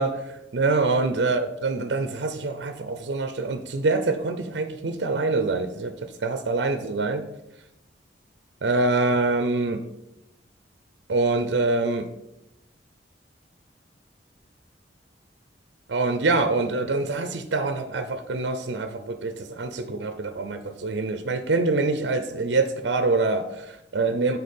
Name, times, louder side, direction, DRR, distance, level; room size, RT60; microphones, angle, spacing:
voice 1, 0.0-5.9 6.2-7.2 8.6-9.8 11.1-12.1 15.9-24.4, right 3 dB, 70° right, 8 dB, 0.6 m, -25 dB
6.7 x 4.2 x 5.3 m, 0.87 s
head